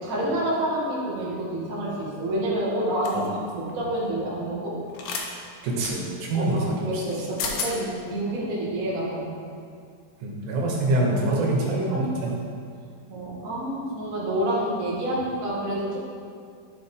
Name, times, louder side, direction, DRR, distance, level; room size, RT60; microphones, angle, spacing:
voice 1, 0.0-3.2 3.5-4.8 6.3-9.4 10.9-11.0 11.3-12.4 13.1-16.1, right 1 dB, 90° right, -7 dB, 0.7 m, -28 dB
sound 1, 3.0-3.3 4.9-5.3 5.8-5.9 7.1-7.2 7.4-7.7, left 5 dB, 75° left, 2.1 m, -30 dB
voice 2, 5.6-7.0 10.2-12.3, right 2 dB, 70° right, -2 dB, 2.7 m, -25 dB
12.0 x 5.0 x 3.7 m, 2.3 s
omnidirectional pair, 4.8 m